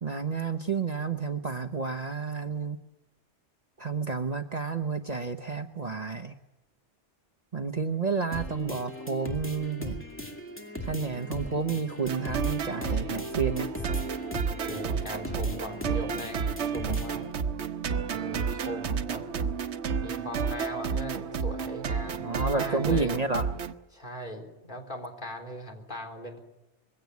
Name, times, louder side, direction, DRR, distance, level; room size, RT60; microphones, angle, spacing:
voice 1, 0.0-2.8 3.8-6.3 7.5-10.0 10.8-13.7 22.1-23.5, right 4 dB, 40° right, 7 dB, 1.0 m, -30 dB
sound 1, 8.3-17.3, equal, 10° left, 2.4 m, -39 dB
sound 2, 12.0-23.7, right 6 dB, 75° right, 1.2 m, -31 dB
voice 2, 14.6-17.2 18.1-19.2 20.0-22.2 22.5-23.1 23.9-26.4, equal, 45° left, 2 dB, 3.9 m, -39 dB
22.0 x 16.5 x 9.4 m, 1.0 s
omnidirectional pair, 1.1 m